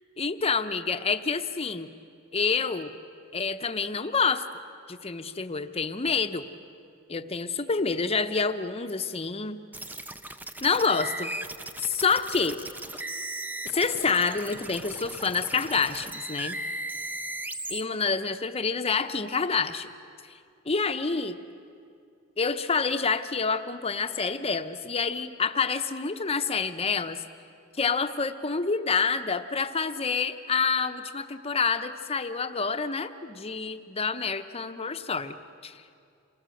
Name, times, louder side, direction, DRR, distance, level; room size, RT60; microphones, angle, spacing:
voice 1, 0.2-1.9 2.3-2.9 3.3-4.4 4.9-6.4 7.1-9.6 10.6-11.3 11.8-12.6 13.6-16.6 17.7-19.9 20.7-21.4 22.4-27.2 27.8-35.3 35.6-35.8, left 5 dB, 30° left, 9 dB, 0.8 m, -27 dB
sound 1, 9.7-17.8, right 1 dB, 10° right, 0.6 m, -37 dB
27.5 x 19.0 x 7.8 m, 2.4 s
head